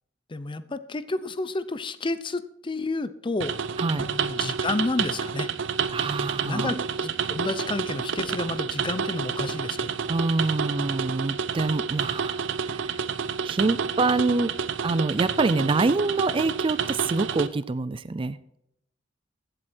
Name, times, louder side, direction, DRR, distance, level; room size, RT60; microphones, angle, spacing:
voice 1, 0.3-3.5 3.9-5.5 6.4-10.0, left 2 dB, 25° left, 14 dB, 0.6 m, -31 dB
sound 1, 3.4-17.5, right 6 dB, 70° right, 0.7 m, -29 dB
voice 2, 5.9-6.8 10.1-12.9 13.4-14.5 14.8-18.4, right 3 dB, 25° right, 16 dB, 0.4 m, -26 dB
15.0 x 7.9 x 4.4 m, 0.77 s
head